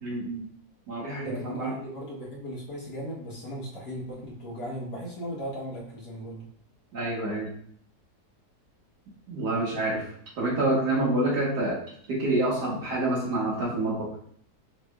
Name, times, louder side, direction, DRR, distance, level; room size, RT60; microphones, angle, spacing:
voice 1, 0.0-0.5 0.9-1.7 6.9-7.5 9.3-10.0 10.4-11.8 12.1-14.1, right 2 dB, 85° right, -6 dB, 1.9 m, -27 dB
voice 2, 1.2-6.4, equal, 80° left, -5 dB, 1.7 m, -37 dB
5.8 x 3.1 x 2.2 m, 0.62 s
omnidirectional pair, 1.7 m